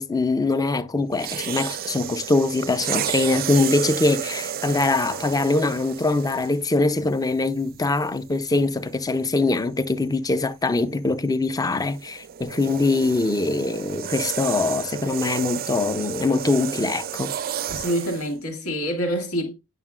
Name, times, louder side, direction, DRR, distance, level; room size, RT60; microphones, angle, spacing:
voice 1, 0.0-17.3, left 3 dB, 15° left, 0.5 m, -23 dB
sound 1, 1.1-6.7 7.5-7.7 11.6-18.3, right 10 dB, 40° right, 0.4 m, -32 dB
voice 2, 17.7-19.5, equal, 75° left, 2.0 m, -26 dB
9.1 x 5.7 x 2.4 m
head